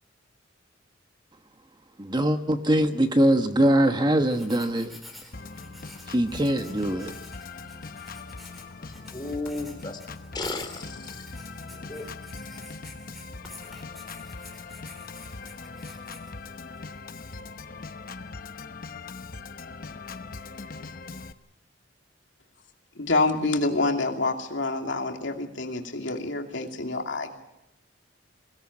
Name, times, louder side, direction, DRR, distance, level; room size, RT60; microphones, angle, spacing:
voice 1, 2.0-5.0 6.1-7.1, right 1 dB, 25° right, 1.2 m, -22 dB
Writing, 4.2-17.0, left 1 dB, ahead, 4.3 m, -49 dB
Organ, 5.3-21.3, left 4 dB, 50° left, 1.0 m, -41 dB
voice 2, 8.8-10.0 10.3-11.3 11.7-12.1, left 2 dB, 25° left, 3.5 m, -35 dB
voice 3, 23.0-27.3, left 3 dB, 80° left, 2.6 m, -27 dB
23.0 x 17.5 x 9.7 m
head